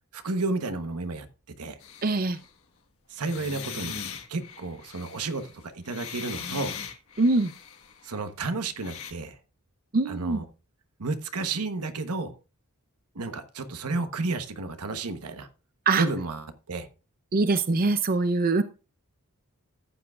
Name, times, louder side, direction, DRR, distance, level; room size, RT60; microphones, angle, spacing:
voice 1, 0.1-1.3 1.6-1.8 3.1-4.0 4.3-6.7 8.0-9.4 10.1-10.4 11.0-12.3 13.1-15.5 16.0-16.9, right 3 dB, 80° right, 9 dB, 1.0 m, -31 dB
sound 1, 1.8-2.5 3.2-8.2 8.8-9.1, left 7 dB, 65° left, 1.5 m, -40 dB
voice 2, 2.0-2.4 7.2-7.5 9.9-10.4 15.9-16.0 17.3-18.6, right 3 dB, 40° right, 11 dB, 0.5 m, -23 dB
14.0 x 8.4 x 2.4 m, 0.33 s
head